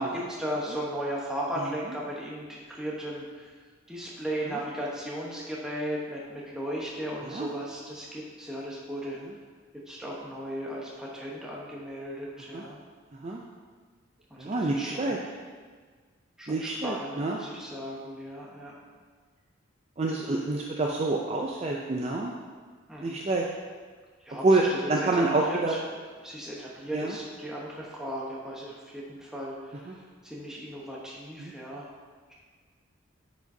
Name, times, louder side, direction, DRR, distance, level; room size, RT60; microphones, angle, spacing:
voice 1, 0.0-3.5 3.9-9.2 9.7-12.8 14.3-15.1 16.4-18.8 22.9-23.2 24.2-25.8 26.2-31.9 32.3-32.4, equal, 5° right, -5 dB, 1.0 m, -36 dB
voice 2, 14.4-15.2 16.5-17.4 20.0-22.3 23.0-23.5 24.4-24.6 24.9-25.7 26.9-27.2 29.9-30.0 31.4-31.5, right 2 dB, 30° right, -1 dB, 0.4 m, -27 dB
9.0 x 5.0 x 2.7 m, 1.5 s
head